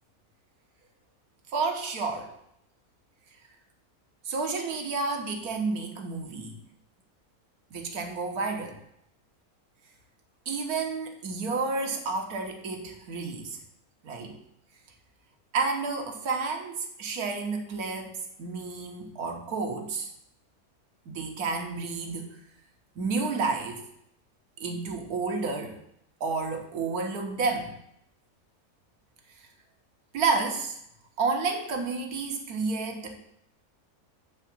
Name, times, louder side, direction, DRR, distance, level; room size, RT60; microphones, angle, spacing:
voice 1, 1.5-2.3 4.2-6.6 7.7-8.8 10.5-13.6 14.0-14.4 15.5-20.1 21.1-22.3 23.0-23.8 24.6-25.8 26.2-27.7 30.1-30.8 31.2-33.2, right 4 dB, 80° right, 3 dB, 1.5 m, -30 dB
8.0 x 3.6 x 5.9 m, 0.73 s
omnidirectional pair, 1.6 m